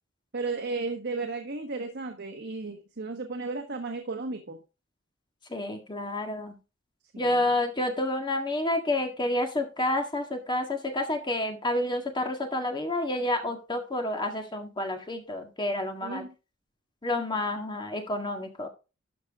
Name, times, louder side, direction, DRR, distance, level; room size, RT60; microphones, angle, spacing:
voice 1, 0.3-4.6 7.1-7.5 16.0-16.3, right 3 dB, 55° right, 5 dB, 1.3 m, -34 dB
voice 2, 5.5-6.6 7.2-16.2 17.0-18.7, left 1 dB, 20° left, 4 dB, 1.8 m, -29 dB
12.5 x 6.1 x 3.6 m, 0.30 s
head